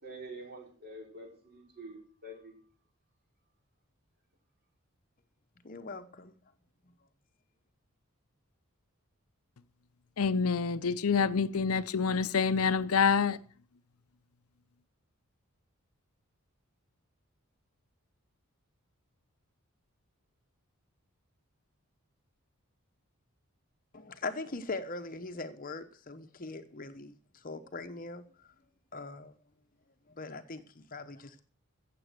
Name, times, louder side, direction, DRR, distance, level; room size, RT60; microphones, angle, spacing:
voice 1, 0.0-2.5, right 1 dB, 45° right, 4.8 m, -46 dB
voice 2, 5.6-6.3 23.9-28.2 28.9-29.3 30.2-31.4, left 3 dB, 40° left, 0.9 m, -41 dB
voice 3, 10.2-13.4, left 5 dB, 75° left, 0.6 m, -27 dB
15.5 x 7.7 x 6.6 m
head